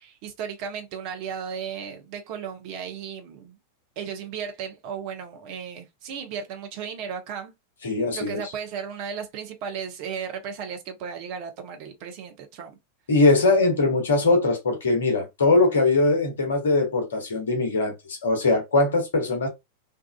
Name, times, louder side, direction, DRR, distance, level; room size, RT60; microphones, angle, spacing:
voice 1, 0.0-3.6 4.0-7.5 8.1-12.8, right 7 dB, 45° right, 0.7 m, -35 dB
voice 2, 7.8-8.4 13.1-19.5, left 3 dB, 65° left, 0.9 m, -21 dB
2.7 x 2.4 x 2.3 m
figure-of-eight pair, 90°, 0 cm